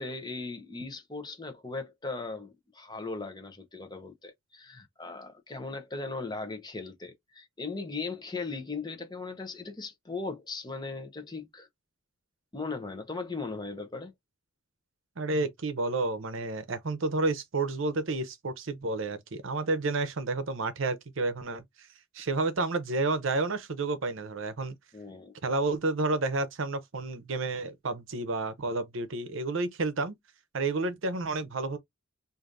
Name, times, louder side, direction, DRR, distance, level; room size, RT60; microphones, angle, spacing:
voice 1, 0.0-11.7 12.5-14.1 24.9-25.3, left 3 dB, 20° left, 0.7 m, -38 dB
voice 2, 15.2-21.6 22.1-24.8 25.4-30.2 30.5-31.8, right 3 dB, 65° right, 0.7 m, -30 dB
4.8 x 2.6 x 2.6 m
head